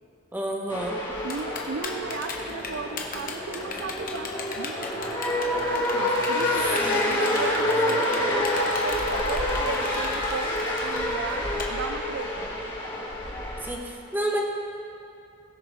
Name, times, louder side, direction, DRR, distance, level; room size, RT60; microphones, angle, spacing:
voice 1, 0.3-1.0 6.8-7.2 13.6-14.4, right 1 dB, 10° right, -1 dB, 1.2 m, -30 dB
sound 1, 0.7-13.7, left 1 dB, 25° left, 2.9 m, -28 dB
voice 2, 1.2-12.5, right 5 dB, 65° right, 8 dB, 0.5 m, -35 dB
Typing, 1.3-11.6, left 5 dB, 45° left, 1.2 m, -37 dB
20.5 x 6.9 x 3.6 m, 2.5 s
head